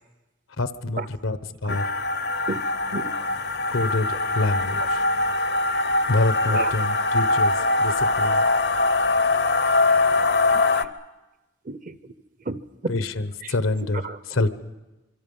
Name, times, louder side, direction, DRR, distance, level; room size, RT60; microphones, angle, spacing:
voice 1, 0.6-1.4 1.6-1.8 3.7-5.0 6.1-7.5 7.8-8.4 12.9-13.1 13.5-14.0 14.3-14.5, left 2 dB, 85° left, 12 dB, 1.0 m, -25 dB
sound 1, 1.7-10.8, left 2 dB, 55° left, 0.7 m, -22 dB
voice 2, 10.5-10.9 11.6-12.1 12.4-12.6 13.4-13.6 13.9-14.5, right 3 dB, 40° right, 14 dB, 0.7 m, -33 dB
25.0 x 24.5 x 5.5 m, 1.1 s
head